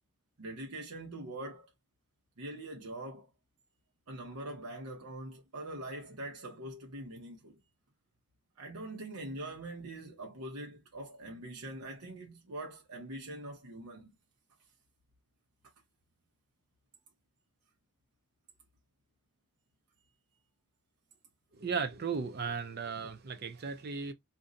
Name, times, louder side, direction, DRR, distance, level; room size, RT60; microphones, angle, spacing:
voice 1, 0.4-1.7 2.4-3.3 4.1-7.6 8.6-14.1, right 1 dB, 90° right, 0.8 m, -43 dB
voice 2, 21.6-24.1, right 5 dB, 45° right, 0.5 m, -36 dB
2.6 x 2.2 x 3.8 m
head